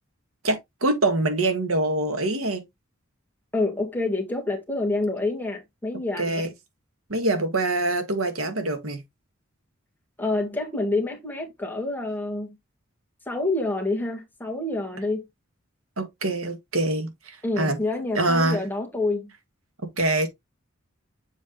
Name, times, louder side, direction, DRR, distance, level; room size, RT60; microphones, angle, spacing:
voice 1, 0.4-2.6 6.2-6.5 7.1-9.0 16.0-17.8 18.2-18.6 20.0-20.3, right 2 dB, 80° right, 1.8 m, -24 dB
voice 2, 3.5-6.5 10.2-12.6 13.3-15.3 17.4-19.3, left 2 dB, 10° left, 1.7 m, -27 dB
7.3 x 3.5 x 3.9 m
head